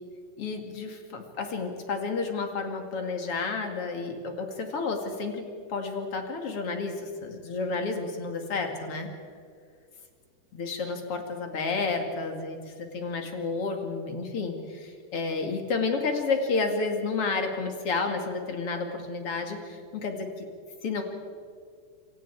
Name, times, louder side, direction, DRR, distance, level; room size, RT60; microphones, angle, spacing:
voice 1, 0.4-5.4 5.7-9.1 10.5-20.5 20.8-21.0, left 4 dB, 40° left, 4 dB, 2.6 m, -31 dB
27.5 x 26.0 x 4.8 m, 2.2 s
omnidirectional pair, 4.8 m